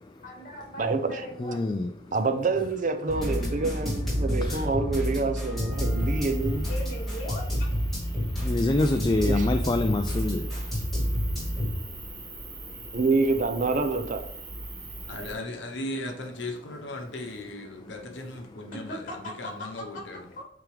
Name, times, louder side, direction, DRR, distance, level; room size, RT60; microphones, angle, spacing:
voice 1, 0.2-1.8 6.7-7.4 18.7-19.2 20.4-20.5, left 1 dB, 40° left, -2 dB, 2.5 m, -39 dB
voice 2, 0.8-1.3 2.1-6.6 9.2-9.5 12.9-14.2, right 3 dB, 40° right, 8 dB, 0.5 m, -27 dB
voice 3, 1.4-1.9 4.4-4.7 8.3-12.9 14.9-15.1, left 2 dB, 25° left, 6 dB, 0.3 m, -28 dB
sound 1, 3.1-11.7, equal, ahead, 2.8 m, -29 dB
sound 2, 5.7-15.3, right 2 dB, 60° right, 2.0 m, -42 dB
voice 4, 15.1-20.2, left 1 dB, 70° left, 3 dB, 1.0 m, -37 dB
9.0 x 3.5 x 3.3 m, 0.69 s
head